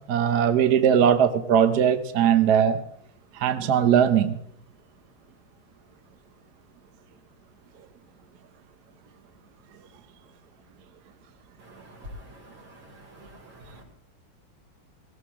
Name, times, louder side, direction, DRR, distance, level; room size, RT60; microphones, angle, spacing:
voice 1, 0.1-2.8 3.4-4.4, right 8 dB, 55° right, 9 dB, 1.3 m, -20 dB
voice 2, 11.6-13.8, equal, 90° right, -2 dB, 5.9 m, -46 dB
18.5 x 17.5 x 3.6 m, 0.72 s
omnidirectional pair, 2.4 m